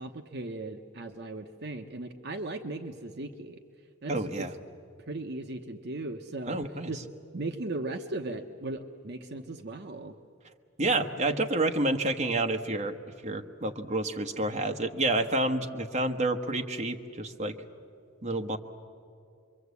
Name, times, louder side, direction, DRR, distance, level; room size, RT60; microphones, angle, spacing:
voice 1, 0.0-3.6 4.0-4.5 5.1-6.6 6.9-7.1 7.3-10.2, right 2 dB, 50° right, 6 dB, 1.0 m, -37 dB
voice 2, 4.1-4.5 6.5-6.9 10.8-12.9 13.2-17.5 18.2-18.6, right 2 dB, 35° right, 4 dB, 1.2 m, -29 dB
26.5 x 23.0 x 8.3 m, 2.5 s
head